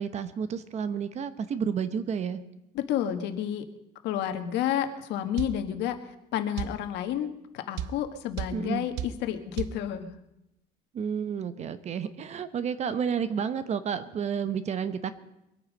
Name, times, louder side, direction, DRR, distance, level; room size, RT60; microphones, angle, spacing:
voice 1, 0.0-2.4 8.5-8.8 10.9-15.1, right 7 dB, 40° right, 12 dB, 0.9 m, -31 dB
voice 2, 2.7-3.7 4.0-6.0 6.3-10.1, left 10 dB, 75° left, 8 dB, 1.5 m, -30 dB
sound 1, 5.4-5.6 6.6-6.8 7.8-8.0 8.4-8.6 9.0-9.2 9.6-9.8, right 10 dB, 90° right, 0.7 m, -32 dB
23.0 x 8.8 x 5.2 m, 0.86 s
cardioid pair, 145°, 18 cm